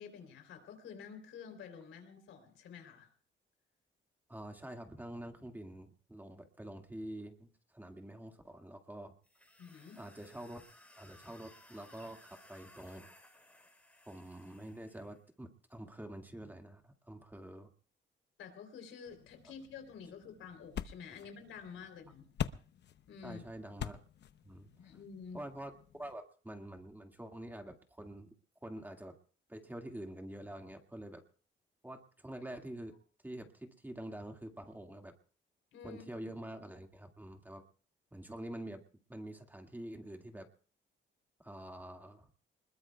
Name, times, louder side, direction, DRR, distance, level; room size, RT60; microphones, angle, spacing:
voice 1, 0.0-3.1 9.6-10.0 18.4-22.3 23.1-23.4 24.8-25.4 35.7-36.1, left 6 dB, 80° left, 6 dB, 3.5 m, -49 dB
voice 2, 4.3-9.1 10.0-10.7 11.0-13.1 14.1-17.7 23.2-24.0 24.4-24.7 25.3-25.7 26.0-28.3 28.6-29.2 29.5-31.2 31.8-33.0 33.2-35.1 35.8-37.6 38.1-38.8 39.1-40.5 41.4-42.3, right 1 dB, 10° right, 4 dB, 2.1 m, -47 dB
sound 1, 9.2-15.2, left 1 dB, 5° left, 3.9 m, -60 dB
sound 2, 19.1-26.1, left 10 dB, 60° left, 0.8 m, -45 dB
25.0 x 21.0 x 2.3 m, 0.41 s
cardioid pair, 90°, 20 cm